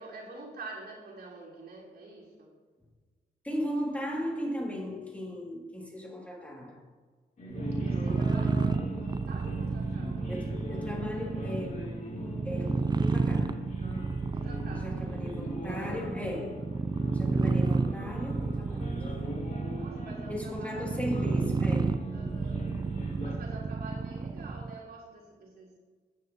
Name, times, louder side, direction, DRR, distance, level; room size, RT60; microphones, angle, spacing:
voice 1, 0.0-2.5 7.7-10.3 14.3-15.0 17.1-17.4 19.8-21.0 22.1-22.7 23.2-25.7, right 3 dB, 70° right, -4 dB, 3.7 m, -47 dB
voice 2, 3.4-6.8 10.3-11.7 12.4-13.6 14.8-16.7 17.1-19.4 20.3-22.1, equal, 10° left, -2 dB, 2.6 m, -37 dB
sound 1, 7.4-23.3, equal, 50° left, 3.3 m, -40 dB
sound 2, 7.5-24.8, right 4 dB, 25° right, 0.4 m, -31 dB
16.0 x 10.0 x 3.0 m, 1.4 s
wide cardioid pair, 120°, 17 cm